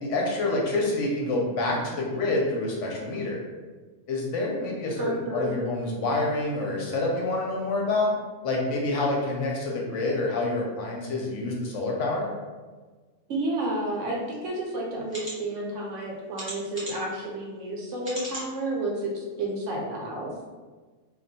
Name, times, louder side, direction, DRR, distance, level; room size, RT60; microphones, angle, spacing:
voice 1, 0.0-3.4 4.1-8.1 8.4-12.3, left 2 dB, 65° left, -2 dB, 0.9 m, -27 dB
voice 2, 5.0-5.5 13.3-20.3, right 1 dB, 70° right, -1 dB, 0.9 m, -31 dB
sound 1, 14.3-14.4 15.1-15.3 16.3-17.1 18.0-18.5 19.0-19.1 19.5-19.6, right 1 dB, 10° right, 0.8 m, -37 dB
2.3 x 2.2 x 3.9 m, 1.4 s
omnidirectional pair, 1.4 m